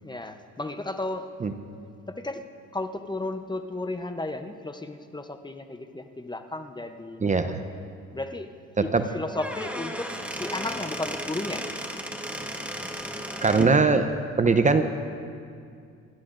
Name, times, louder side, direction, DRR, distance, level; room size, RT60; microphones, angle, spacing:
voice 1, 0.0-1.3 2.1-2.4 2.7-7.4 8.1-8.5 8.8-11.7, left 2 dB, 15° left, 7 dB, 0.7 m, -34 dB
voice 2, 7.2-7.6 8.8-9.0 13.4-14.1 14.4-14.8, right 4 dB, 25° right, 8 dB, 0.7 m, -21 dB
Squeak / Wood, 9.2-13.8, equal, 5° right, 1.3 m, -34 dB
26.5 x 12.5 x 2.6 m, 2.4 s
cardioid pair, 90°, 31 cm